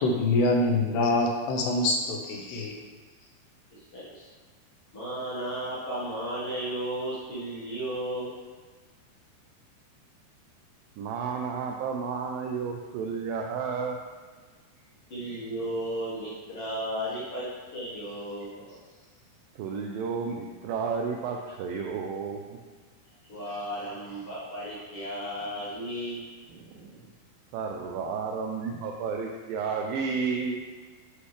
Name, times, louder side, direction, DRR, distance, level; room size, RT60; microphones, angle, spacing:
voice 1, 0.0-2.7, left 2 dB, 85° left, 0 dB, 3.0 m, -25 dB
voice 2, 3.7-4.2 4.9-8.3 15.1-18.7 23.3-26.2, right 1 dB, 60° left, -9 dB, 1.5 m, -34 dB
voice 3, 11.0-14.0 19.6-22.6 26.5-27.1 27.5-30.6, right 5 dB, 85° right, 1 dB, 2.0 m, -32 dB
8.2 x 5.5 x 3.2 m, 1.4 s
omnidirectional pair, 4.6 m